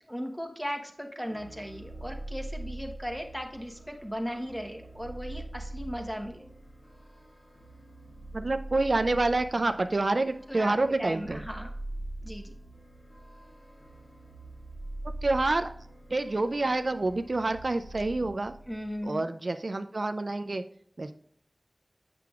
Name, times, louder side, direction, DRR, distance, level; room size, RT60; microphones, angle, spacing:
voice 1, 0.1-6.5 10.5-11.7 12.2-12.5 18.7-19.2, equal, ahead, 3 dB, 1.1 m, -37 dB
sound 1, 1.2-19.1, right 1 dB, 55° left, 2.1 m, -43 dB
voice 2, 8.3-11.4 15.2-15.7 16.1-18.5 19.0-20.6 21.0-21.1, right 2 dB, 70° right, 8 dB, 0.3 m, -27 dB
7.6 x 5.8 x 2.4 m, 0.64 s
wide cardioid pair, 40°, 0 cm